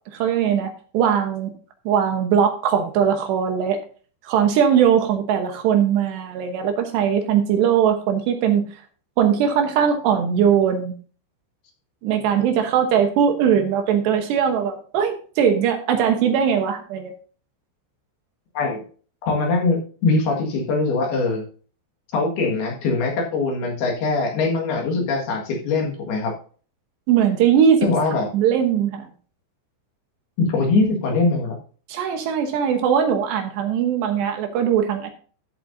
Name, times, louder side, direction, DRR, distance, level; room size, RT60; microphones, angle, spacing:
voice 1, 0.1-1.5 1.9-3.8 4.2-8.7 9.2-10.9 12.0-17.1 27.1-27.9 28.3-29.1 31.9-35.1, right 8 dB, 70° right, 5 dB, 3.0 m, -20 dB
voice 2, 19.3-21.4 22.1-26.3 27.8-28.3 30.4-31.6, left 3 dB, 60° left, 1 dB, 3.3 m, -22 dB
13.5 x 7.6 x 2.6 m, 0.41 s
omnidirectional pair, 5.5 m